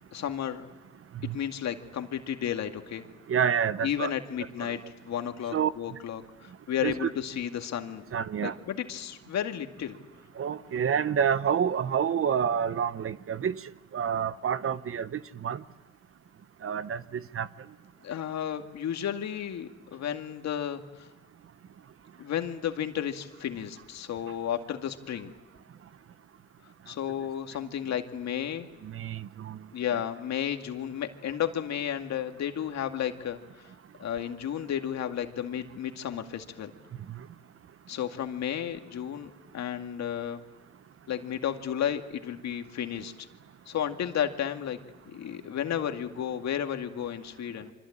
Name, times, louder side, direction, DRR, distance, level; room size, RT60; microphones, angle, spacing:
voice 1, 0.1-0.7 1.2-3.0 3.8-4.8 5.0-8.0 8.4-10.0 18.0-21.1 22.2-25.3 26.9-28.7 29.7-33.4 34.0-36.7 37.9-40.4 41.1-43.1 43.7-44.8 45.1-47.7, left 9 dB, 65° left, 2.3 m, -33 dB
voice 2, 3.3-4.1 4.6-4.8 5.5-5.7 6.8-7.1 8.1-8.5 10.4-13.5 13.9-15.6 16.6-17.5 28.8-29.6 37.1-37.2, right 8 dB, 45° right, 1.0 m, -28 dB
27.5 x 25.0 x 8.8 m
cardioid pair, 80°, 30 cm